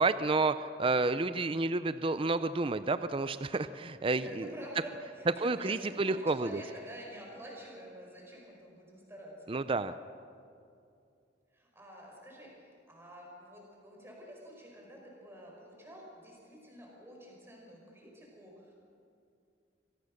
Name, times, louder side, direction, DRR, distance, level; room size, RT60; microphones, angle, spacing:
voice 1, 0.0-4.5 5.4-6.6 9.5-9.9, right 3 dB, 30° right, 13 dB, 0.5 m, -30 dB
voice 2, 4.1-9.6 11.5-12.5 12.9-18.7, right 1 dB, 15° right, -2 dB, 5.4 m, -49 dB
25.5 x 16.5 x 6.6 m, 2.5 s
head